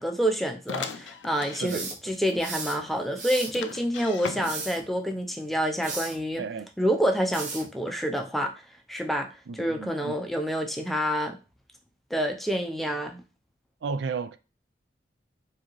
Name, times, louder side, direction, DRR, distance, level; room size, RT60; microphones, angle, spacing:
voice 1, 0.0-6.4 6.8-8.5 8.9-9.3 9.5-11.4 12.1-13.2, equal, ahead, 0.4 m, -28 dB
sound 1, 0.7-1.7 2.2-2.3 2.6-2.7 3.5-4.8, left 6 dB, 80° left, 0.4 m, -37 dB
sound 2, 1.6-2.8 3.1-3.6 4.3-4.8 5.8-6.2 7.3-7.7, right 4 dB, 40° right, 0.8 m, -36 dB
voice 2, 6.4-6.7 9.5-10.2 13.8-14.4, right 5 dB, 65° right, 0.3 m, -33 dB
4.7 x 2.8 x 3.0 m
head